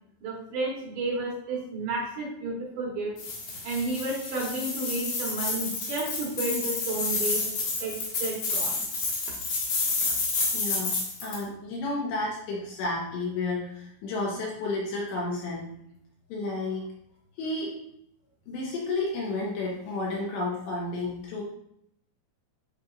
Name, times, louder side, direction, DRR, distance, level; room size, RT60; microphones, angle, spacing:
voice 1, 0.2-3.2 3.6-7.4 7.8-8.8, right 2 dB, 70° right, -3 dB, 3.0 m, -32 dB
sound 1, 3.2-11.4, left 3 dB, 55° left, 2.3 m, -30 dB
voice 2, 10.5-11.0 11.2-15.7 16.3-16.8 17.4-17.7 18.5-21.4, left 2 dB, 75° left, -3 dB, 2.9 m, -31 dB
10.5 x 4.5 x 2.5 m, 0.74 s
omnidirectional pair, 5.9 m